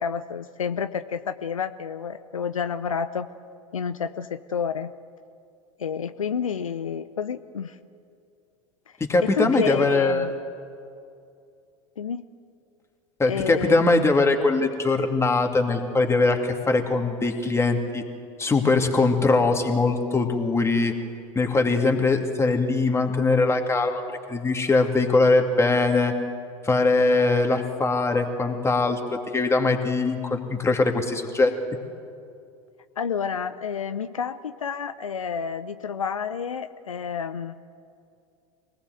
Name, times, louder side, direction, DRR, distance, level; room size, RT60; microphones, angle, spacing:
voice 1, 0.0-3.3 3.7-4.9 5.8-7.8 9.2-10.3 12.0-12.2 13.3-13.8 33.0-37.6, left 6 dB, 85° left, 11 dB, 0.7 m, -29 dB
voice 2, 9.0-10.3 13.2-18.0 18.4-20.9 21.3-24.0 24.3-26.1 26.6-31.5, left 3 dB, 15° left, 4 dB, 2.6 m, -21 dB
25.0 x 18.5 x 7.9 m, 2.4 s
figure-of-eight pair, 80°, 17 cm